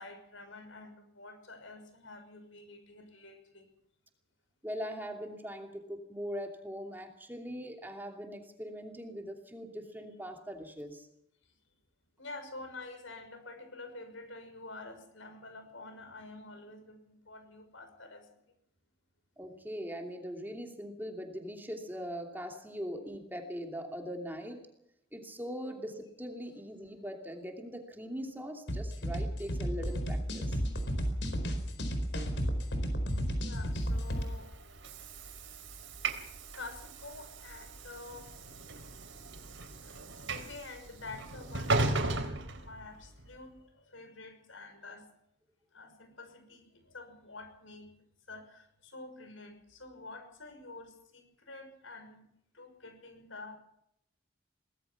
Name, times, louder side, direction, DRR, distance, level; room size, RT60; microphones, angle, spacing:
voice 1, 0.0-3.7 12.2-18.3 33.4-34.5 36.5-38.3 39.8-42.2 42.6-45.1 45.7-47.9 48.3-52.2 52.5-53.6, left 3 dB, 85° left, 7 dB, 6.0 m, -48 dB
voice 2, 4.6-11.1 19.4-24.6 25.1-30.6, equal, 10° right, 3 dB, 2.8 m, -41 dB
sound 1, 28.7-34.2, equal, 65° left, 4.5 m, -32 dB
Train / Sliding door, 34.0-43.3, right 2 dB, 80° right, 3.6 m, -37 dB
23.5 x 19.0 x 5.9 m, 0.76 s
head